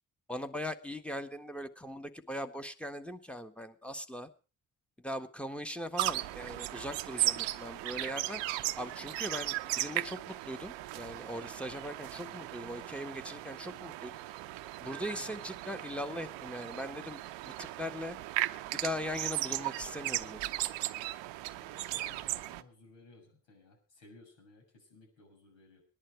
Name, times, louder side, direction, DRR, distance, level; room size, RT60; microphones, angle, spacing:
voice 1, 0.3-4.3 5.0-8.4 8.8-14.1 14.8-18.2 18.7-20.4, equal, 5° left, 6 dB, 1.5 m, -40 dB
sound 1, 6.0-22.6, right 16 dB, 75° right, 0.8 m, -37 dB
voice 2, 21.5-25.8, left 2 dB, 70° left, 1 dB, 6.7 m, -58 dB
19.0 x 11.0 x 4.6 m, 0.35 s
hypercardioid pair, 45°, 44 cm